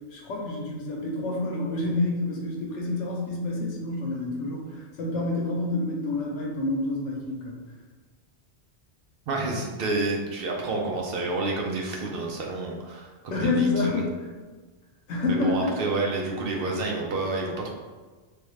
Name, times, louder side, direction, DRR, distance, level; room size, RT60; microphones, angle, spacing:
voice 1, 0.1-7.6 13.3-14.3 15.1-15.7, left 2 dB, 90° left, -2 dB, 1.0 m, -28 dB
voice 2, 9.3-14.0 15.3-17.6, right 2 dB, 65° right, 0 dB, 0.7 m, -29 dB
3.3 x 2.3 x 3.1 m, 1.3 s
omnidirectional pair, 1.2 m